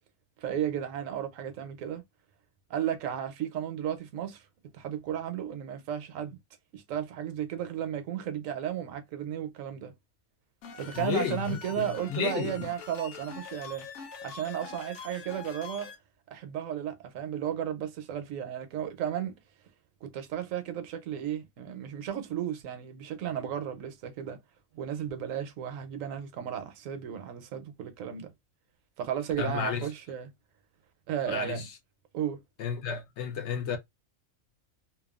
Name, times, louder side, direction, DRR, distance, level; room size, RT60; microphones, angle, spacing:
voice 1, 0.4-2.0 2.7-4.4 4.7-6.4 6.7-9.9 10.7-13.9 14.2-15.9 16.3-19.3 20.0-24.4 24.7-28.3 29.0-30.3 31.1-31.7 32.1-32.4, right 9 dB, 75° right, 1.0 m, -34 dB
sound 1, 10.6-16.0, left 5 dB, 80° left, 1.1 m, -44 dB
voice 2, 10.9-12.7 29.4-29.9 31.2-31.7 32.6-33.8, left 7 dB, 65° left, 0.8 m, -32 dB
2.9 x 2.3 x 2.3 m
omnidirectional pair, 1.4 m